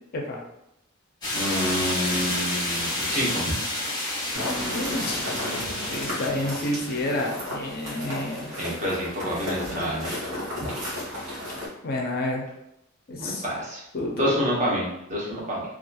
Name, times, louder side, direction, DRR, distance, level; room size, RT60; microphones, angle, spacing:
sound 1, 1.2-6.3, left 1 dB, 20° left, 0.8 m, -29 dB
voice 1, 1.3-3.5 8.6-10.1 13.2-13.8 14.1-15.6, equal, 35° right, -5 dB, 0.8 m, -28 dB
sound 2, 4.3-11.7, left 1 dB, 75° right, 1.0 m, -33 dB
voice 2, 4.7-8.5 11.8-12.5 13.1-13.4 13.9-14.4, left 1 dB, 45° left, 0 dB, 0.4 m, -30 dB
2.9 x 2.3 x 2.2 m, 0.83 s
head